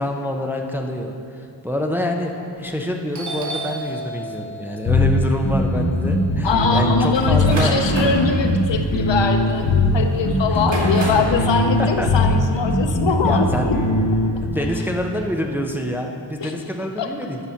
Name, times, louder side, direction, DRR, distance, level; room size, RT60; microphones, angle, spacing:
voice 1, 0.0-7.7 10.5-11.0 11.4-11.5 11.8-12.1 13.1-13.7 14.4-17.4, equal, 5° right, 2 dB, 0.5 m, -26 dB
Doorbell, 3.1-7.3 7.6-9.2, right 2 dB, 40° right, 1.0 m, -34 dB
sound 1, 4.8-14.4, left 2 dB, 45° left, 1.3 m, -20 dB
voice 2, 6.4-13.8 16.4-16.5 17.0-17.1, left 5 dB, 70° left, 6 dB, 0.8 m, -22 dB
sound 2, 7.1-9.9 10.5-11.4, right 1 dB, 70° right, 2.3 m, -28 dB
9.8 x 6.7 x 5.8 m, 2.5 s
wide cardioid pair, 145°, 47 cm